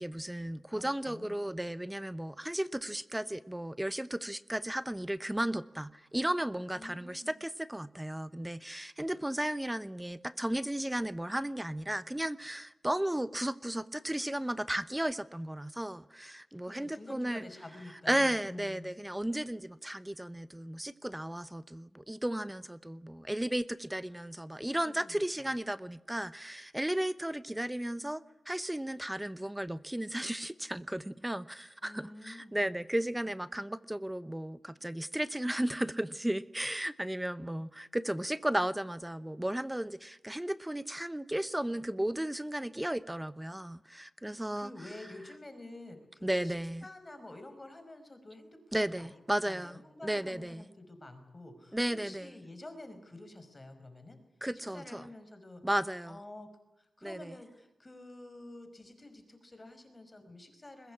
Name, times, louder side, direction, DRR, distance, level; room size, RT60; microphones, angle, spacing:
voice 1, 0.0-17.4 18.1-44.7 46.2-46.8 48.7-50.7 51.7-52.3 54.4-55.0 55.6-56.2 57.0-57.3, right 1 dB, 10° right, 0.9 m, -34 dB
voice 2, 0.7-1.4 6.7-7.3 16.6-18.9 24.8-25.5 31.8-32.7 44.3-54.2 54.5-55.6 56.0-56.5 56.8-60.9, left 2 dB, 25° left, 5.1 m, -49 dB
22.0 x 21.0 x 9.9 m
cardioid pair, 75°, 0 cm